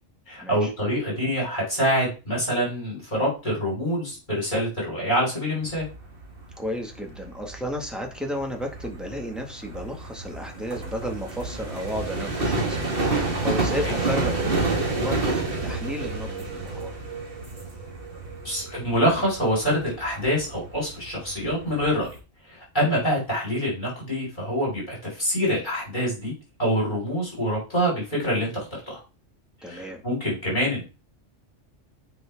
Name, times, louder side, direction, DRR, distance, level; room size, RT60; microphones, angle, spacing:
voice 1, 0.3-5.9 13.8-13.9 18.4-22.1 22.5-26.3 26.6-28.7 29.6-30.9, equal, 40° left, -5 dB, 5.3 m, -25 dB
sound 1, 5.6-22.2, right 3 dB, 50° right, 2.0 m, -30 dB
voice 2, 6.6-16.9 29.6-30.0, equal, ahead, 2 dB, 1.7 m, -33 dB
9.3 x 5.4 x 3.6 m, 0.31 s
omnidirectional pair, 1.3 m